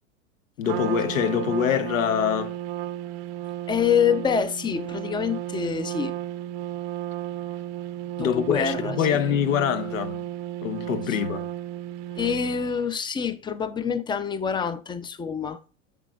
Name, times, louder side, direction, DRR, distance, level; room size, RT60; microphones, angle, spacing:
voice 1, 0.6-2.6 8.2-10.2 10.6-11.5, left 9 dB, 75° left, 1.0 m, -24 dB
Trumpet, 0.6-12.8, right 13 dB, 50° right, 0.7 m, -33 dB
voice 2, 3.7-6.2 8.2-9.0 12.2-15.6, left 7 dB, 10° left, 0.5 m, -26 dB
8.3 x 6.5 x 2.4 m
hypercardioid pair, 105°, 40 cm